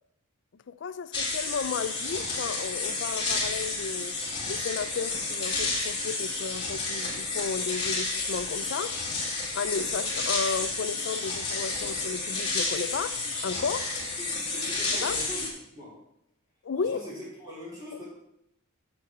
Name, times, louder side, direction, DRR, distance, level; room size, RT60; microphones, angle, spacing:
voice 1, 0.7-4.1 4.5-9.0 9.5-14.0 15.0-15.2 16.6-17.0, left 5 dB, 55° left, 0.4 m, -33 dB
sound 1, 1.1-15.5, left 3 dB, 20° left, 1.9 m, -31 dB
voice 2, 14.2-15.5 15.7-15.9 16.7-18.1, left 1 dB, 15° right, 3.4 m, -41 dB
8.4 x 6.7 x 4.4 m
head